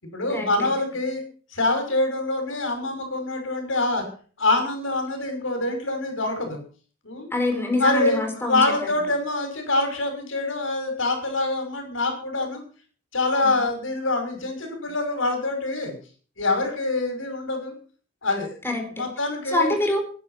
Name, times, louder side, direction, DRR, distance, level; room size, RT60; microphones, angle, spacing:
voice 1, 0.1-1.2 1.5-4.0 4.4-6.6 7.0-7.3 7.7-12.6 13.1-15.9 16.4-17.7 18.2-18.5 18.9-19.7, left 2 dB, 90° left, 5 dB, 6.4 m, -25 dB
voice 2, 7.3-8.6 13.4-13.5 18.6-19.0 19.5-20.0, left 2 dB, 10° left, 3 dB, 4.3 m, -25 dB
19.0 x 11.0 x 5.9 m, 0.41 s
head